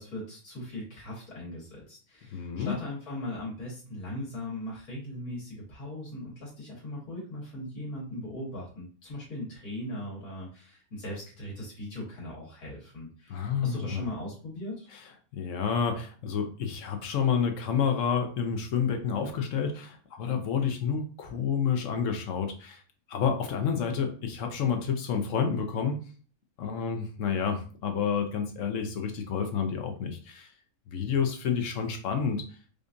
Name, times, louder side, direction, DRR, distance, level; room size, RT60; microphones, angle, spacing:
voice 1, 0.0-14.9, left 1 dB, 80° left, -5 dB, 1.9 m, -39 dB
voice 2, 2.3-2.8 13.3-14.1 15.3-22.8 23.1-26.0 26.6-30.5 30.9-32.5, left 6 dB, 65° left, 5 dB, 0.9 m, -29 dB
5.1 x 2.3 x 2.6 m, 0.39 s
omnidirectional pair, 1.5 m